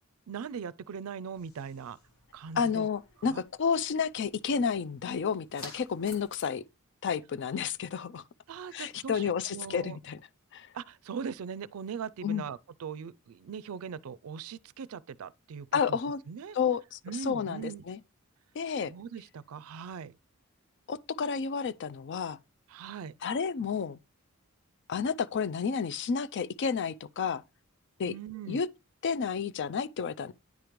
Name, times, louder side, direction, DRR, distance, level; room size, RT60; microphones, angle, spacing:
voice 1, 0.3-2.0 2.3-2.9 3.2-3.4 8.5-10.0 10.7-16.0 16.3-16.6 17.0-17.8 18.9-20.2 22.7-23.1 28.0-28.6, right 6 dB, 85° right, 0.4 m, -40 dB
sound 1, 1.3-6.4, left 3 dB, 90° left, 1.8 m, -52 dB
voice 2, 2.6-6.6 7.0-8.2 8.7-10.2 10.5-10.7 12.2-12.4 15.7-16.2 16.5-18.0 18.6-18.9 20.9-22.4 23.2-24.0 24.9-27.4 28.0-28.1 28.5-28.7 29.0-30.3, left 6 dB, 55° left, 0.4 m, -31 dB
9.3 x 5.0 x 3.0 m
head